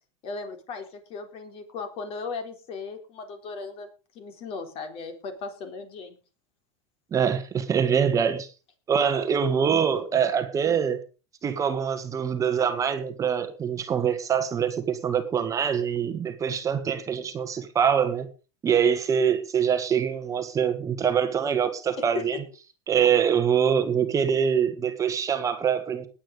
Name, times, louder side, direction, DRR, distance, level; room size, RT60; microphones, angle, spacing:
voice 1, 0.2-3.9 4.1-6.2, left 4 dB, 40° left, 6 dB, 4.1 m, -37 dB
voice 2, 7.1-8.5 8.9-11.0 11.4-18.3 18.6-22.4 22.9-26.1, right 7 dB, 20° right, 7 dB, 1.6 m, -24 dB
19.5 x 8.8 x 5.2 m, 0.35 s
supercardioid pair, 145°, 15 cm